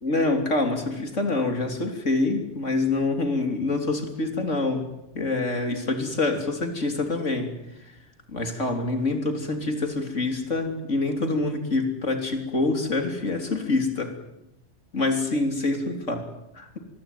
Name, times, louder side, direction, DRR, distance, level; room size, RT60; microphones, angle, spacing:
voice 1, 0.0-7.6 8.3-14.1 14.9-16.3 16.6-16.8, left 2 dB, 90° left, 6 dB, 3.9 m, -26 dB
25.5 x 21.5 x 9.3 m, 0.86 s
omnidirectional pair, 1.2 m